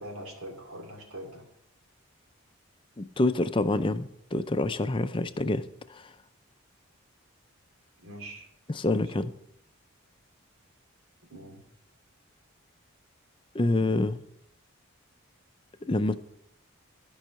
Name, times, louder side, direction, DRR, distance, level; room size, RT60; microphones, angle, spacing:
voice 1, 0.0-1.4 8.0-8.5 9.0-9.1 11.3-11.6, right 1 dB, 80° right, 2 dB, 2.6 m, -43 dB
voice 2, 3.0-6.1 8.7-9.3 13.5-14.2 15.9-16.2, left 2 dB, 25° left, 11 dB, 0.4 m, -27 dB
13.5 x 5.5 x 6.3 m, 0.75 s
head